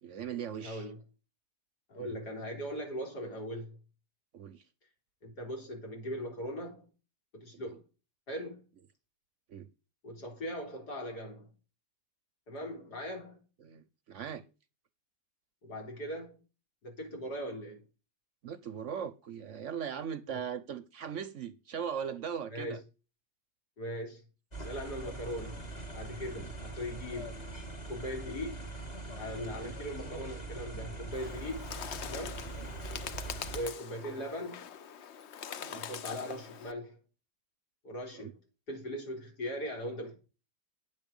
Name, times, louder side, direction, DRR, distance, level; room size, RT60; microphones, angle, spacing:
voice 1, 0.0-0.9 2.0-2.2 4.3-4.6 7.5-7.8 9.5-9.7 13.6-14.4 18.4-22.8 26.2-26.5 29.5-29.8 32.6-32.7 34.0-34.2 35.5-35.8 38.1-38.3, right 7 dB, 60° right, 0.9 m, -40 dB
voice 2, 0.6-1.0 1.9-3.8 5.2-6.8 7.3-7.8 8.3-8.7 10.0-11.5 12.5-13.4 15.6-16.4 16.8-17.8 20.3-20.4 22.5-22.8 23.8-24.2 24.6-25.7 25.9-27.4 27.9-28.7 29.2-31.7 32.0-32.4 33.5-34.7 35.7-37.0 37.8-38.4 38.7-40.1, equal, 85° left, 4.2 m, -39 dB
sound 1, 24.5-33.6, right 2 dB, 25° left, 1.9 m, -42 dB
Bird, 31.1-36.7, left 8 dB, 55° left, 0.8 m, -43 dB
9.3 x 7.5 x 5.3 m
omnidirectional pair, 1.7 m